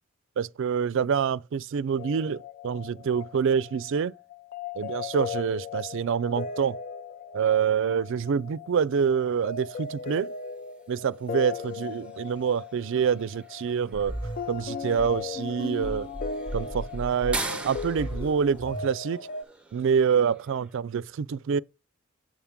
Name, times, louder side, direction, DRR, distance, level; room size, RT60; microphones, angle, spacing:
voice 1, 0.4-4.1 4.8-6.8 7.3-10.3 10.9-14.2 14.5-16.1 16.5-19.2 19.7-21.6, right 7 dB, 65° right, 0.4 m, -26 dB
sound 1, 2.0-19.4, left 6 dB, 45° left, 0.3 m, -38 dB
sound 2, 8.9-20.8, right 2 dB, 5° right, 0.7 m, -43 dB
sound 3, 13.8-19.0, equal, 25° left, 1.1 m, -37 dB
7.4 x 7.3 x 3.5 m
head